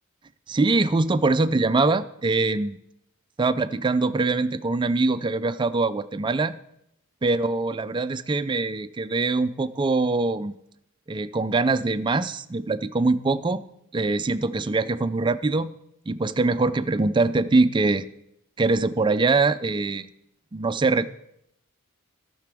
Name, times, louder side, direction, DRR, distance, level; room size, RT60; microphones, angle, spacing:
voice 1, 0.5-2.8 3.4-6.5 7.2-10.5 11.1-13.6 13.9-15.7 16.1-18.0 18.6-20.1 20.5-21.1, right 3 dB, 20° right, 11 dB, 0.4 m, -23 dB
16.0 x 5.9 x 3.5 m, 0.79 s
head